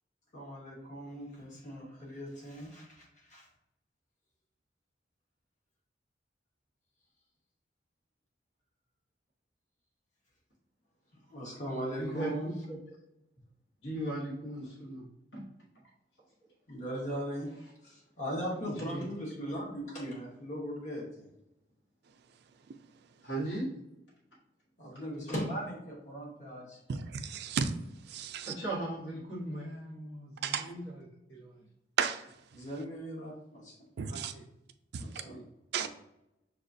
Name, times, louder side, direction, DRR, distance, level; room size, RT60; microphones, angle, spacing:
voice 1, 0.3-3.5 11.3-12.5 14.6-14.7 16.7-17.5 17.8-21.3 24.8-26.8 28.3-28.5 32.5-33.8 35.0-35.4 35.8-35.9, equal, 45° left, -3 dB, 1.0 m, -39 dB
voice 2, 12.0-12.3 12.7-12.8 13.8-15.1 15.3-15.4 18.8-19.0 23.2-23.7 28.4-31.6 34.1-34.4 35.2-35.4, right 1 dB, 80° left, -4 dB, 1.4 m, -38 dB
voice 3, 26.9-27.7 28.1-28.5 30.4-30.7 32.0-32.2 34.0-34.3 34.9-35.0 35.7-35.9, right 6 dB, 60° right, 8 dB, 0.4 m, -33 dB
6.5 x 2.3 x 2.6 m, 0.87 s
head